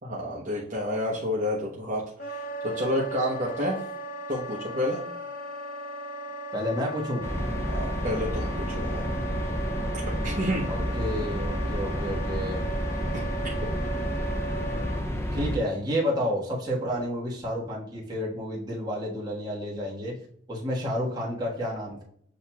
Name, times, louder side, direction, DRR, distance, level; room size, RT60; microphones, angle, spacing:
voice 1, 0.0-3.8 4.3-5.0 7.7-9.1 9.9-10.6, left 1 dB, 40° right, -5 dB, 0.8 m, -30 dB
Wind instrument woodwind instrument, 2.2-15.0, right 2 dB, 45° left, 1.0 m, -37 dB
voice 2, 6.5-7.2 10.3-12.6 15.3-20.1 20.5-22.0, equal, 20° right, -5 dB, 1.3 m, -30 dB
sound 1, 7.2-15.6, equal, 15° left, 0.4 m, -30 dB
7.8 x 2.8 x 2.2 m, 0.65 s
head